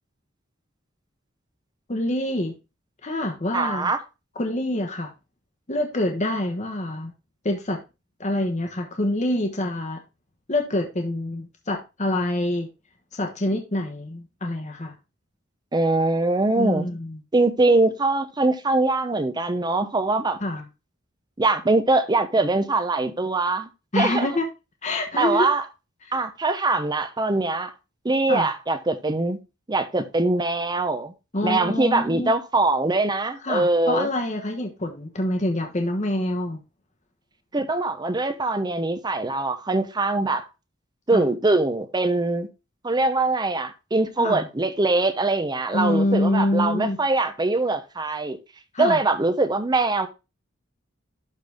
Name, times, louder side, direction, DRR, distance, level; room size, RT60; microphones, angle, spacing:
voice 1, 1.9-2.5 3.0-3.9 4.4-5.1 5.7-7.1 7.4-7.8 8.2-10.0 10.5-12.7 13.1-14.9 16.6-17.2 20.4-20.6 23.9-24.4 24.8-25.5 26.0-26.1 28.3-28.5 31.3-32.3 33.4-36.6 41.1-41.3 44.2-44.5 45.7-47.0 48.7-49.0, left 1 dB, 35° left, 1.1 m, -26 dB
voice 2, 3.5-4.0 15.7-16.9 17.3-20.4 21.4-23.7 23.9-24.3 25.2-25.6 26.1-27.7 28.0-29.4 29.7-31.1 31.4-34.1 37.5-40.4 41.1-42.5 42.8-48.4 48.8-50.1, right 2 dB, 20° right, 0.7 m, -22 dB
12.0 x 4.0 x 3.4 m
head